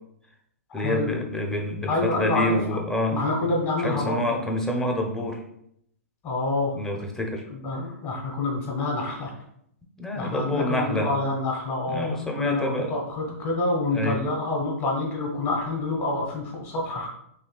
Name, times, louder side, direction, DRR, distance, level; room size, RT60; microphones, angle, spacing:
voice 1, 0.7-5.4 6.7-7.4 10.0-11.1 11.9-12.9 13.3-13.4 13.9-14.2, left 1 dB, 5° left, 2 dB, 0.6 m, -28 dB
voice 2, 1.9-2.6 3.1-4.2 6.2-6.8 7.5-9.3 10.1-17.1, left 2 dB, 30° left, 0 dB, 1.4 m, -27 dB
5.5 x 3.2 x 2.3 m, 0.72 s
hypercardioid pair, 125°, 8 cm